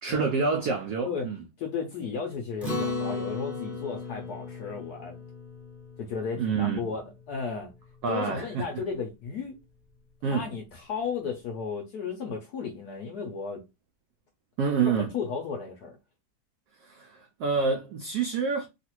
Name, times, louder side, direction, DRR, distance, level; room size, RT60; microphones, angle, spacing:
voice 1, 0.0-1.4 6.4-6.8 8.0-8.8 10.2-10.4 14.6-15.1 16.8-18.7, right 5 dB, 85° right, 0.8 m, -27 dB
voice 2, 1.6-5.2 6.0-7.0 7.3-7.7 8.1-9.6 10.3-13.6 14.8-16.0, left 5 dB, 75° left, 0.9 m, -34 dB
Acoustic guitar, 2.6-7.3, left 3 dB, ahead, 0.7 m, -36 dB
3.2 x 2.4 x 2.9 m
omnidirectional pair, 2.3 m